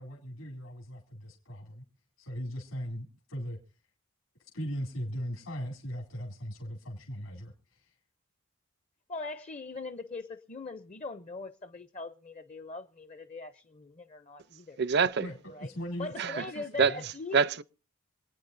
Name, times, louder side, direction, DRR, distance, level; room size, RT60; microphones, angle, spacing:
voice 1, 0.0-1.8 2.2-3.6 4.4-7.9 15.2-17.1, equal, 75° left, 2.6 m, -39 dB
voice 2, 9.1-14.8 15.5-15.7 16.0-17.4, left 3 dB, 30° left, 0.5 m, -41 dB
voice 3, 14.8-15.3 16.2-16.5 16.8-17.6, right 5 dB, 50° right, 0.5 m, -26 dB
26.5 x 9.4 x 2.6 m
head